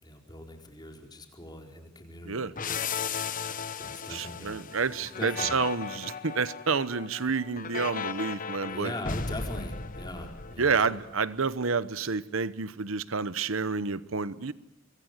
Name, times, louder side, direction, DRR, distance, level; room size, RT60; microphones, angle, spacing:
voice 1, 0.0-2.9 3.2-3.4 3.7-4.6 5.2-5.6 8.7-10.9, left 1 dB, 20° left, 3 dB, 4.5 m, -41 dB
sound 1, 2.6-11.0, left 5 dB, 40° left, 1.2 m, -36 dB
voice 2, 4.1-8.9 10.6-14.5, right 5 dB, 80° right, 16 dB, 1.0 m, -29 dB
25.0 x 24.5 x 8.1 m, 0.89 s
head